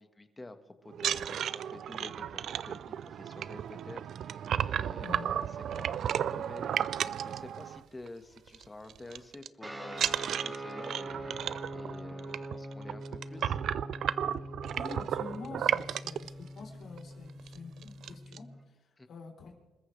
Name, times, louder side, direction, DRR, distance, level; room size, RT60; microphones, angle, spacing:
voice 1, 0.0-5.5 5.7-13.6 19.0-19.1, left 2 dB, 20° left, 8 dB, 1.6 m, -49 dB
sound 1, 0.9-8.1 8.4-8.6 8.9-9.5 9.9-16.3 17.0-17.1 17.4-17.6 17.8-18.4, right 9 dB, 65° right, 0.5 m, -33 dB
voice 2, 5.0-5.4 14.7-19.5, left 4 dB, 65° left, 2 dB, 3.8 m, -46 dB
sound 2, 9.6-18.6, right 1 dB, 15° right, 3.1 m, -43 dB
28.5 x 14.0 x 3.4 m, 1.1 s
cardioid pair, 90°, 0 cm